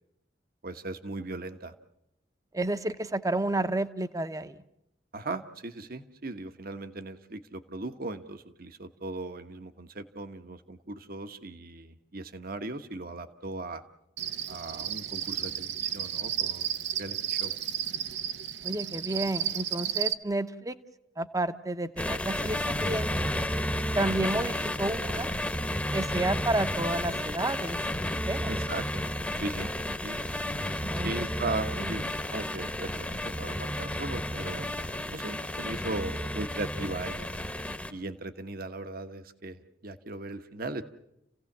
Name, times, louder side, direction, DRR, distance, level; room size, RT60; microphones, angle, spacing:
voice 1, 0.6-1.7 5.1-13.8 14.5-17.5 28.5-29.0 29.3-29.7 30.0-30.2 31.0-34.7 35.1-37.3 37.9-40.8, right 2 dB, 55° right, 9 dB, 1.3 m, -38 dB
voice 2, 2.5-4.6 18.6-20.7 21.2-23.1 23.9-25.3 25.9-28.5 30.8-31.3 31.7-31.9, right 2 dB, 20° right, 10 dB, 0.9 m, -31 dB
Cricket, 14.2-20.1, right 10 dB, 75° right, 0.9 m, -33 dB
sound 1, 22.0-37.9, left 1 dB, 10° left, 1.1 m, -32 dB
30.0 x 16.5 x 7.4 m, 0.84 s
head